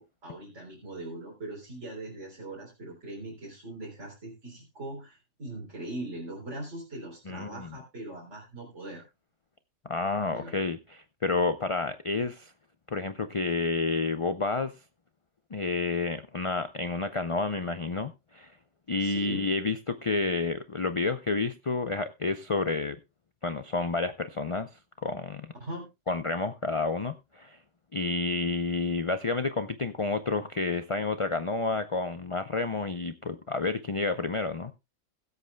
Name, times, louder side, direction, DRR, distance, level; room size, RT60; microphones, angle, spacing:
voice 1, 0.0-9.0 10.3-10.6 19.0-19.5 25.6-25.9, right 1 dB, 55° right, 4.1 m, -41 dB
voice 2, 7.3-7.7 9.8-12.5 12.9-14.7 15.5-18.5 18.9-23.0 23.4-24.7 25.0-25.5 26.1-27.6 27.9-34.7, left 3 dB, 40° left, 0.4 m, -30 dB
21.5 x 8.2 x 2.2 m
omnidirectional pair, 1.4 m